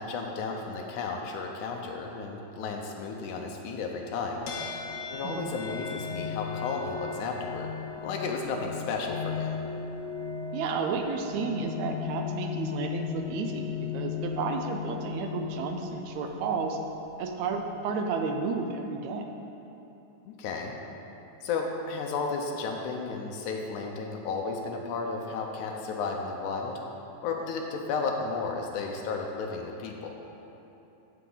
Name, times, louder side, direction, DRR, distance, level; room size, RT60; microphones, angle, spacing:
voice 1, 0.0-4.4 5.1-7.7 8.0-9.6 20.3-20.7 21.4-26.8 27.2-30.1, left 4 dB, 85° left, 1 dB, 2.2 m, -33 dB
sound 1, 4.5-18.0, left 7 dB, 70° left, 2.0 m, -37 dB
voice 2, 5.2-5.5 10.5-16.8 17.2-19.3, right 4 dB, 80° right, 4 dB, 1.9 m, -32 dB
14.5 x 6.8 x 3.9 m, 3.0 s
omnidirectional pair, 3.5 m